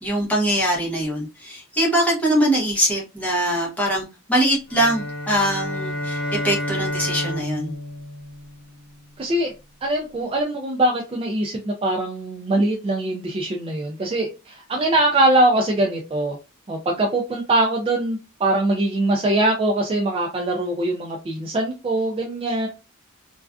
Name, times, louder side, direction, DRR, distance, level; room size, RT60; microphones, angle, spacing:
voice 1, 0.0-7.7, equal, 5° left, -3 dB, 0.7 m, -22 dB
sound 1, 4.7-9.1, left 1 dB, 55° left, 0.9 m, -30 dB
voice 2, 9.2-9.5 9.8-16.4 16.7-22.7, right 1 dB, 25° right, 0 dB, 0.3 m, -22 dB
2.4 x 2.3 x 2.3 m, 0.29 s
head